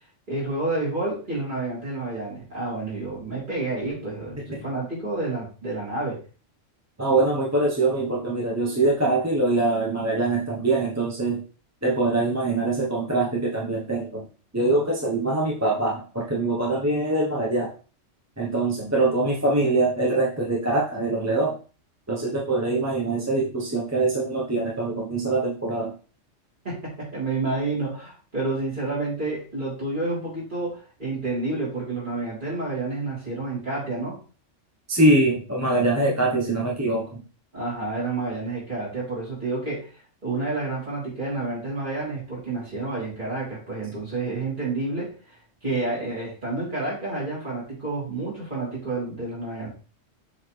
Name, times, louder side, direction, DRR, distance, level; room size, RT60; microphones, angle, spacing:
voice 1, 0.3-6.2 26.6-34.2 37.5-39.9 40.2-45.4 45.6-49.7, right 2 dB, 40° right, -7 dB, 4.0 m, -29 dB
voice 2, 7.0-11.4 11.8-14.3 14.5-17.7 18.4-21.6 22.1-25.9 34.9-37.2, right 2 dB, 15° right, -3 dB, 0.9 m, -23 dB
7.0 x 4.1 x 3.3 m, 0.37 s
omnidirectional pair, 1.3 m